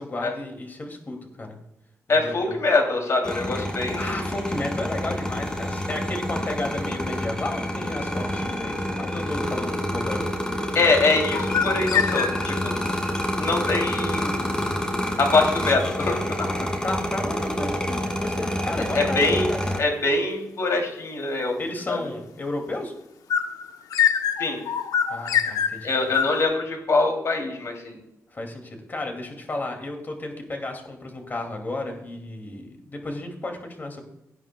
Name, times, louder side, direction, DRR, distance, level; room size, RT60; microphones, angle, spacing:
voice 1, 0.0-1.6 2.1-2.6 3.9-10.3 16.8-19.6 21.6-22.9 25.1-26.1 28.3-34.1, left 2 dB, 30° left, 3 dB, 2.3 m, -33 dB
voice 2, 2.1-4.2 10.7-12.7 13.4-14.5 15.2-16.6 18.9-19.5 19.8-21.6 21.9-22.0 24.4-24.6 25.8-28.0, left 3 dB, 55° left, 3 dB, 2.8 m, -23 dB
sound 1, 3.2-19.8, left 1 dB, 15° left, 1.9 m, -28 dB
sound 2, 11.3-12.7 23.3-26.4, left 8 dB, 85° left, 0.8 m, -25 dB
17.5 x 9.0 x 2.2 m, 0.87 s
wide cardioid pair, 120°, 6 cm